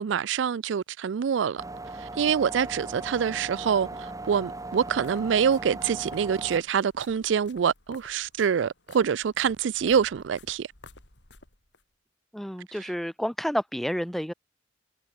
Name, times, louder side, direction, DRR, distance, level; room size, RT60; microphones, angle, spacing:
voice 1, 0.0-1.6 2.0-10.7, right 7 dB, 85° right, 0.4 m, -26 dB
sound 1, 1.6-6.6, right 2 dB, 20° right, 1.1 m, -38 dB
sound 2, 4.5-11.8, left 3 dB, 70° left, 4.6 m, -53 dB
voice 2, 12.3-14.3, equal, ahead, 1.4 m, -30 dB
head